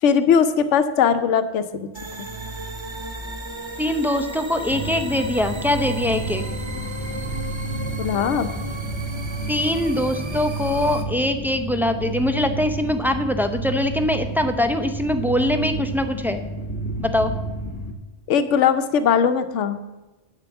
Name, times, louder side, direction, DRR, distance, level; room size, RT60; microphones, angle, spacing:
voice 1, 0.0-1.9 8.0-8.5 18.3-19.8, left 7 dB, 85° left, 10 dB, 1.0 m, -19 dB
sound 1, 1.9-11.0, right 1 dB, 25° right, 0.8 m, -34 dB
voice 2, 3.8-6.4 9.5-16.4 17.0-17.3, left 1 dB, 5° right, 7 dB, 0.4 m, -23 dB
sound 2, 4.7-17.9, right 2 dB, 30° left, 1.4 m, -31 dB
9.0 x 6.8 x 7.1 m, 1.1 s
omnidirectional pair, 1.2 m